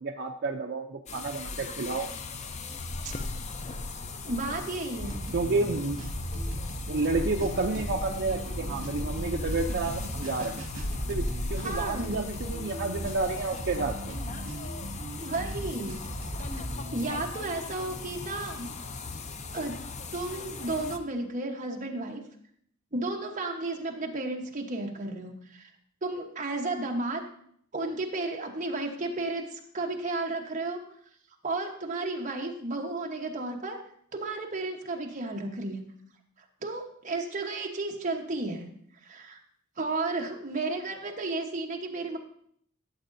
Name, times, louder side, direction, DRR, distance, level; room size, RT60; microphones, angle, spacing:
voice 1, 0.0-2.1 5.3-6.0 6.9-10.6 11.1-14.2, right 3 dB, 55° right, 2 dB, 0.5 m, -30 dB
sound 1, 1.1-21.0, left 3 dB, 35° left, 0.5 m, -37 dB
voice 2, 4.2-5.2 11.6-12.3 15.2-16.0 16.9-18.7 19.5-19.8 20.1-22.2 22.9-25.7 26.0-27.2 27.7-30.8 31.4-33.8 34.1-35.8 36.6-38.7 39.0-39.4 39.8-42.2, right 2 dB, 35° right, 2 dB, 1.1 m, -33 dB
sound 2, 5.0-17.5, right 1 dB, 70° right, 1.9 m, -38 dB
13.0 x 7.4 x 2.7 m, 0.64 s
head